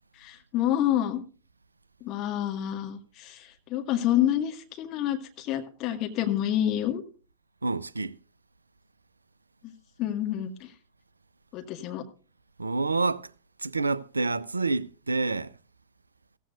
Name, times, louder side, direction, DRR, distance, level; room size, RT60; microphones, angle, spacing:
voice 1, 0.2-1.2 2.0-7.0 9.6-9.7 10.0-10.7 11.5-12.0, left 11 dB, 40° left, 1.9 m, -28 dB
voice 2, 7.6-8.2 12.6-13.3 13.6-15.6, right 3 dB, 80° right, 0.5 m, -28 dB
16.0 x 15.0 x 2.6 m
figure-of-eight pair, 90°, 0 cm